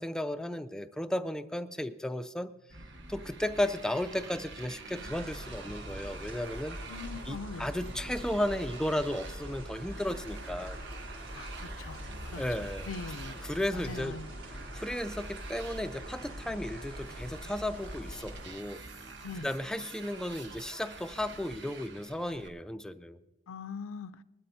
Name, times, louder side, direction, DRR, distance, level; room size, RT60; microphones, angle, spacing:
voice 1, 0.0-2.5 3.1-6.8 7.3-10.8 12.4-12.9 13.4-14.2 14.7-18.8 19.4-23.2, left 1 dB, 5° left, 0.3 m, -34 dB
Motorcycle, 2.7-22.5, right 3 dB, 55° right, 1.2 m, -47 dB
sound 1, 4.9-18.5, equal, 90° right, 5.1 m, -44 dB
voice 2, 6.9-7.7 11.3-12.4 12.9-13.4 13.7-14.3 19.2-19.5 23.5-24.2, left 4 dB, 85° left, 0.5 m, -42 dB
20.5 x 12.5 x 2.7 m
head